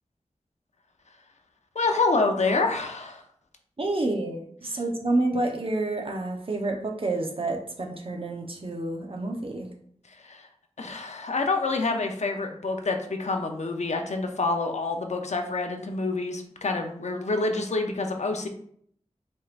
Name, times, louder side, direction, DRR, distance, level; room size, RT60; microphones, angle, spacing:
voice 1, 1.7-3.2 10.2-10.5 10.8-18.5, left 3 dB, 70° left, 4 dB, 0.7 m, -27 dB
voice 2, 3.8-9.7, right 2 dB, 50° right, 2 dB, 0.9 m, -29 dB
5.3 x 3.6 x 2.5 m, 0.63 s
wide cardioid pair, 55°, 12 cm